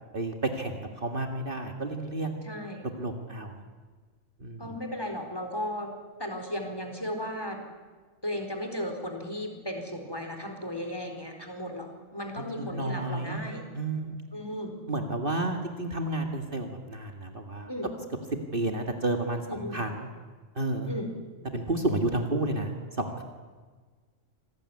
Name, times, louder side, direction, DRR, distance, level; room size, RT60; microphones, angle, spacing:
voice 1, 0.1-2.4 3.0-3.6 4.4-4.7 12.6-13.4 13.7-14.2 14.9-17.7 18.5-20.1 20.6-20.9 21.5-23.2, right 2 dB, 40° right, 4 dB, 2.1 m, -31 dB
voice 2, 2.4-2.9 4.6-5.9 6.2-7.6 8.2-13.6 14.3-14.7 17.7-17.9 19.5-19.8 20.9-21.1, left 1 dB, 15° left, 4 dB, 4.3 m, -35 dB
26.5 x 19.5 x 9.8 m, 1.4 s
omnidirectional pair, 1.4 m